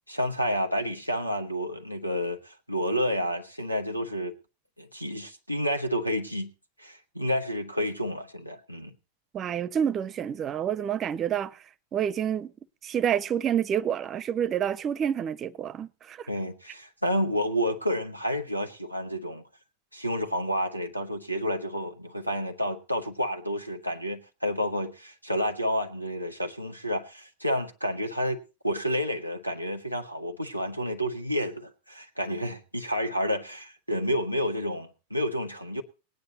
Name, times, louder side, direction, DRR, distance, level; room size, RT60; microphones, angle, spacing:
voice 1, 0.1-4.3 4.8-6.5 6.8-9.0 16.3-19.4 19.9-28.4 28.6-35.8, equal, 90° left, 1.3 m, -30 dB
voice 2, 9.3-11.6 11.9-12.5 12.8-16.3, right 9 dB, 30° right, 0.5 m, -28 dB
18.5 x 9.7 x 4.1 m
figure-of-eight pair, 90°, 0 cm